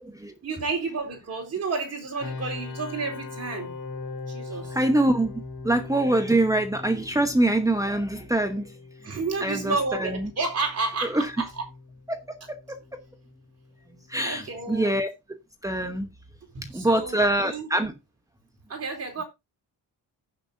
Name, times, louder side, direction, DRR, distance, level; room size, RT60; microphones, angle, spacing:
voice 1, 0.4-3.7 4.3-4.8 9.0-11.5 14.2-15.0 16.5-17.7 18.7-19.2, right 4 dB, 40° right, 4.0 m, -31 dB
sound 1, 2.2-15.0, left 3 dB, 60° left, 3.7 m, -41 dB
voice 2, 4.7-8.7 9.0-10.3 11.0-11.3 12.1-12.2 12.5-13.0 14.1-15.1 15.6-16.1 16.7-17.9, right 1 dB, 10° right, 1.0 m, -25 dB
16.0 x 6.6 x 2.6 m
wide cardioid pair, 170°, 38 cm